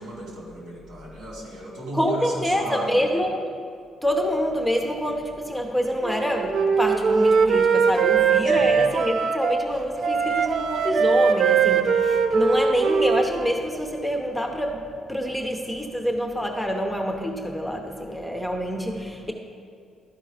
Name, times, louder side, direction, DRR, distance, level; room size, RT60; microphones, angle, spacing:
voice 1, 0.0-3.2 8.4-8.9, right 1 dB, 85° right, -2 dB, 2.5 m, -35 dB
voice 2, 1.9-3.5 4.0-19.3, equal, ahead, 2 dB, 0.8 m, -26 dB
Wind instrument woodwind instrument, 6.0-9.7 10.0-13.6, right 5 dB, 60° right, 0.5 m, -21 dB
12.5 x 4.6 x 4.9 m, 2.2 s
cardioid pair, 110°, 0 cm